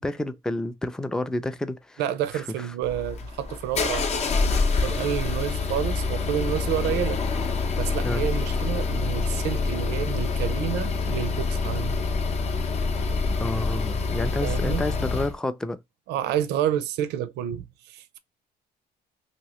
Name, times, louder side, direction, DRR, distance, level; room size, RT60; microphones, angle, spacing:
voice 1, 0.0-2.0 2.3-2.7 8.0-8.2 13.4-15.8, left 1 dB, 5° left, 0.3 m, -30 dB
voice 2, 2.0-4.2 4.8-7.2 7.8-12.0 14.4-14.8 16.1-18.2, right 10 dB, 85° right, 0.5 m, -29 dB
sound 1, 2.8-15.3, left 4 dB, 40° left, 0.7 m, -26 dB
sound 2, 4.4-11.7, left 5 dB, 90° left, 1.6 m, -46 dB
2.9 x 2.7 x 2.9 m
cardioid pair, 110°, 17 cm